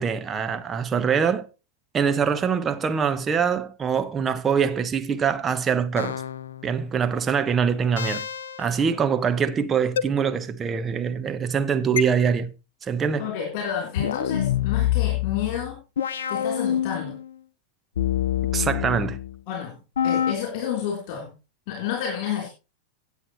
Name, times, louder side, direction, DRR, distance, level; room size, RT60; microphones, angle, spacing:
voice 1, 0.0-1.5 1.9-6.1 6.6-8.3 8.6-12.5 12.8-13.3 18.5-19.2, right 6 dB, 20° right, 1.1 m, -24 dB
sound 1, 6.0-6.7 8.0-8.7 10.0-10.1 12.0-12.1 14.0-17.3 18.0-19.4 20.0-20.3, left 10 dB, 65° left, 0.6 m, -26 dB
voice 2, 13.2-15.8 16.3-17.2 19.5-21.3 21.7-22.5, left 9 dB, 45° left, 3.5 m, -30 dB
16.5 x 8.5 x 3.0 m
figure-of-eight pair, 90°, 0 cm